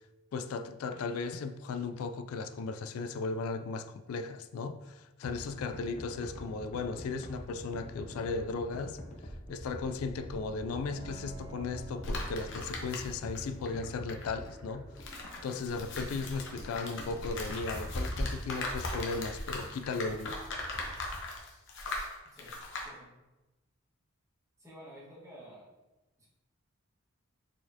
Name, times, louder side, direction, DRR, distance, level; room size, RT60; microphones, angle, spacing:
voice 1, 0.3-9.0 9.5-20.4, left 4 dB, 90° left, 0.3 m, -36 dB
sound 1, 5.2-21.2, equal, 35° left, 0.6 m, -46 dB
Piano, 10.9-20.5, right 3 dB, 55° right, 0.6 m, -57 dB
sound 2, 12.0-13.4 13.7-22.9, left 2 dB, 65° left, 0.9 m, -38 dB
voice 2, 22.8-23.1 24.6-25.7 26.2-26.3, equal, 15° right, 1.5 m, -51 dB
4.3 x 4.3 x 2.8 m
head